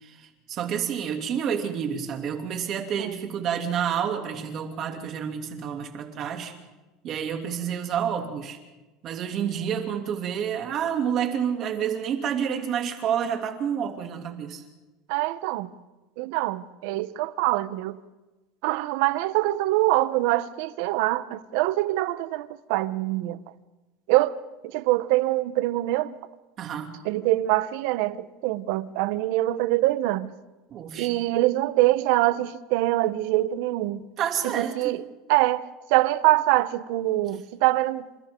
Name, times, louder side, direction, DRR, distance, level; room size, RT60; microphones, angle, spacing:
voice 1, 0.0-6.5 7.0-8.6 9.0-14.6 26.6-26.9 30.7-31.2 34.2-35.0, right 8 dB, 40° right, 2.8 m, -29 dB
voice 2, 15.1-15.7 16.2-18.0 18.6-23.4 24.1-24.4 24.6-26.2 27.0-30.3 31.0-34.0 34.4-35.0 35.3-38.1, right 17 dB, 70° right, 0.9 m, -24 dB
28.5 x 26.5 x 3.8 m
cardioid pair, 160°, 0 cm